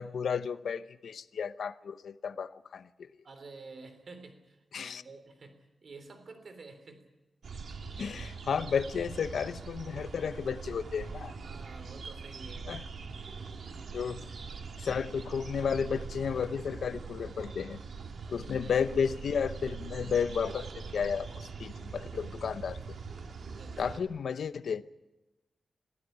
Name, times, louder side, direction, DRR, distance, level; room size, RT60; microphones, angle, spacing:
voice 1, 0.0-3.1 4.7-5.0 8.0-11.3 12.7-12.8 13.9-14.3 14.8-17.8 18.3-22.8 23.8-24.8, left 6 dB, 85° left, 13 dB, 0.7 m, -33 dB
voice 2, 3.2-7.1 11.4-13.3 18.3-18.9 23.6-24.0, right 3 dB, 55° right, 8 dB, 3.4 m, -50 dB
sound 1, 7.4-24.0, right 5 dB, 75° right, 2.0 m, -42 dB
23.0 x 15.0 x 9.4 m, 1.1 s
wide cardioid pair, 140°, 0 cm